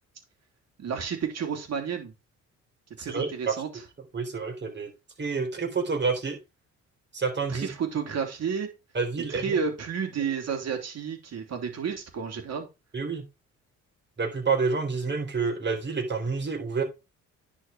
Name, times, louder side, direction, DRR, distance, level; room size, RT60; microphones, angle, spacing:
voice 1, 0.8-2.1 3.0-3.8 7.5-8.7 9.3-12.7, right 6 dB, 55° right, 4 dB, 3.5 m, -31 dB
voice 2, 3.0-3.6 4.1-4.9 5.2-6.4 7.1-7.7 8.9-9.5 12.9-13.2 14.2-16.8, right 4 dB, 35° right, 2 dB, 4.0 m, -28 dB
10.5 x 4.9 x 4.6 m, 0.26 s
cardioid pair, 90°, 30 cm